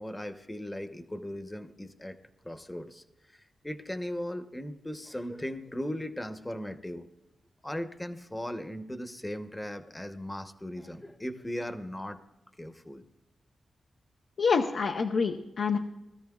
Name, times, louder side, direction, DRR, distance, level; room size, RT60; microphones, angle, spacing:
voice 1, 0.0-2.2 2.4-7.0 7.6-12.2 12.6-13.0, left 1 dB, 15° left, 9 dB, 1.0 m, -38 dB
voice 2, 14.4-15.8, left 5 dB, 75° left, 3 dB, 0.8 m, -27 dB
20.0 x 13.5 x 2.4 m, 0.99 s
cardioid pair, 75°, 0 cm